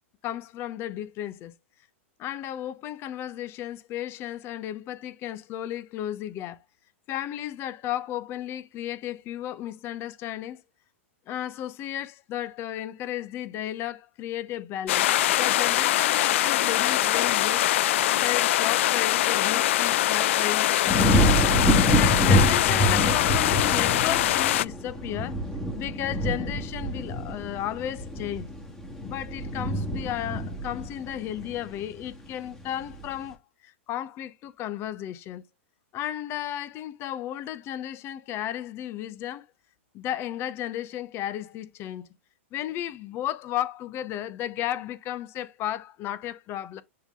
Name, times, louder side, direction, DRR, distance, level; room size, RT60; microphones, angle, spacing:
voice 1, 0.2-1.5 2.2-6.6 7.1-10.6 11.3-17.6 18.2-21.4 21.9-25.4 25.7-28.5 29.0-35.4 35.9-39.5 39.9-42.1 42.5-46.8, left 12 dB, 35° left, 0.8 m, -34 dB
sound 1, 14.9-24.6, left 14 dB, 65° left, 0.3 m, -23 dB
sound 2, 20.9-32.1 32.6-33.0, equal, 5° left, 2.0 m, -26 dB
7.0 x 3.9 x 3.6 m
hypercardioid pair, 135°, 7 cm